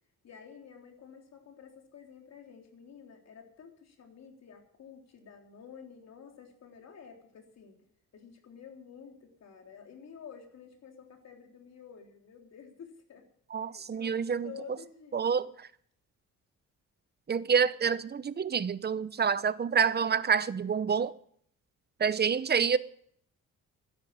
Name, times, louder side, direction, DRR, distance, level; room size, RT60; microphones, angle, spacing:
voice 1, 0.2-7.8 8.1-13.3 13.7-14.2 14.4-15.5, left 7 dB, 60° left, 3.6 m, -51 dB
voice 2, 13.5-14.5 15.1-15.5 17.3-21.1 22.0-22.8, right 6 dB, 35° right, 0.8 m, -27 dB
13.0 x 10.5 x 8.7 m
cardioid pair, 90°, 30 cm